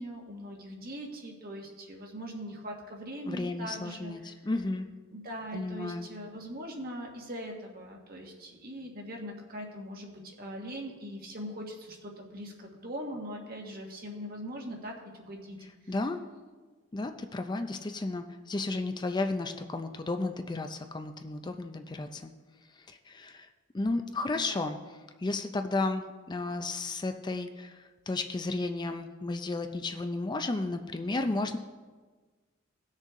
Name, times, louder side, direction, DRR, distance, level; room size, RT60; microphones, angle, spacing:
voice 1, 0.0-4.3 5.1-15.6 15.8-15.9 24.3-24.6, equal, 50° right, 0 dB, 1.6 m, -41 dB
voice 2, 3.2-4.9 5.5-6.1 15.9-16.2 16.9-22.3 22.9-23.5 23.7-24.8 25.2-31.6, left 2 dB, 25° left, 7 dB, 0.5 m, -33 dB
17.5 x 6.5 x 3.7 m, 1.4 s
head